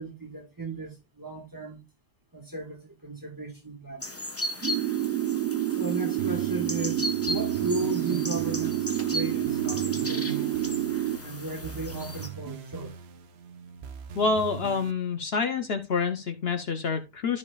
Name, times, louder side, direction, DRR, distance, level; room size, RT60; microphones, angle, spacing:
voice 1, 0.0-1.8 2.3-4.2 5.7-10.5 11.2-12.9, right 3 dB, 15° right, 1.3 m, -36 dB
sound 1, 4.0-12.3, left 1 dB, 15° left, 0.7 m, -36 dB
sound 2, 4.6-11.2, right 13 dB, 85° right, 1.1 m, -28 dB
sound 3, 6.2-14.9, right 7 dB, 55° right, 1.0 m, -40 dB
voice 2, 14.2-17.4, left 4 dB, 55° left, 0.9 m, -27 dB
13.0 x 4.9 x 2.3 m
omnidirectional pair, 1.3 m